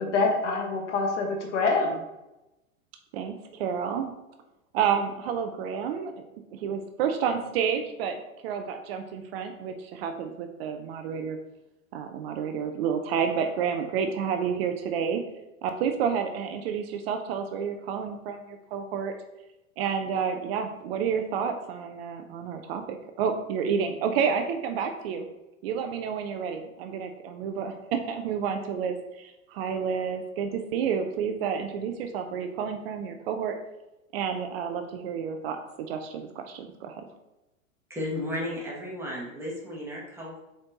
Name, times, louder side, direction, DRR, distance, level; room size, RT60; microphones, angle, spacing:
voice 1, 0.0-2.0, left 3 dB, 60° left, 1 dB, 1.5 m, -26 dB
voice 2, 3.1-4.1 4.7-6.2 6.5-8.2 8.4-11.4 11.9-15.2 15.6-19.1 19.8-25.3 25.6-33.5 34.1-37.0, right 7 dB, 50° right, 6 dB, 0.7 m, -30 dB
voice 3, 37.9-40.4, left 1 dB, 5° right, -5 dB, 2.1 m, -34 dB
7.3 x 4.4 x 3.0 m, 0.96 s
figure-of-eight pair, 95°, 40 cm